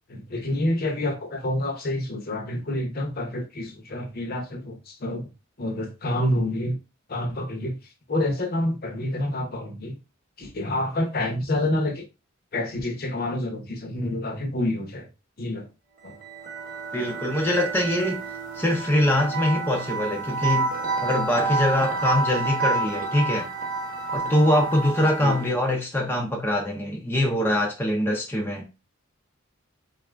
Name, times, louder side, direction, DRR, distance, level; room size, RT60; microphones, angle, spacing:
voice 1, 0.1-5.3 5.6-6.8 7.1-7.8 8.1-10.0 10.4-12.0 12.5-15.1 15.4-15.7 16.0-16.2 25.2-25.5, left 1 dB, 45° left, 0.8 m, -28 dB
sound 1, 16.1-25.6, right 3 dB, 40° right, 0.9 m, -29 dB
voice 2, 16.9-18.2 18.5-20.7 21.0-23.5 24.1-28.7, left 1 dB, 10° left, 0.5 m, -23 dB
4.1 x 2.5 x 3.3 m
head